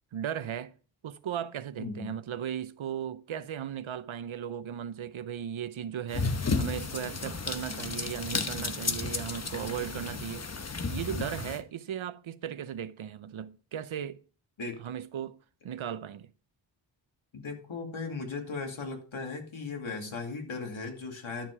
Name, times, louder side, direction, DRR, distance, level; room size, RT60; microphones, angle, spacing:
voice 1, 0.1-0.7 1.0-10.5 10.9-14.2 14.8-15.4 15.6-16.3, right 9 dB, 85° right, 0.8 m, -36 dB
voice 2, 1.8-2.1 14.6-14.8 17.3-21.5, left 4 dB, 85° left, 2.6 m, -37 dB
sound 1, 6.1-11.6, left 4 dB, 35° left, 1.1 m, -33 dB
12.0 x 7.3 x 4.9 m
wide cardioid pair, 95°, 46 cm